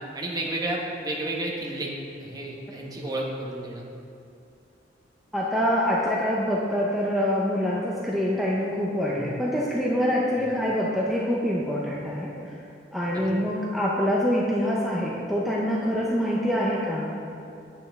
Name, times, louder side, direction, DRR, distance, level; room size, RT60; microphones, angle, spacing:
voice 1, 0.1-1.9 2.2-3.8 10.3-10.5 13.1-13.3, right 1 dB, 20° right, -2 dB, 1.1 m, -31 dB
voice 2, 5.3-12.6 12.9-17.1, equal, ahead, -6 dB, 0.7 m, -25 dB
8.7 x 8.5 x 3.5 m, 2.6 s
head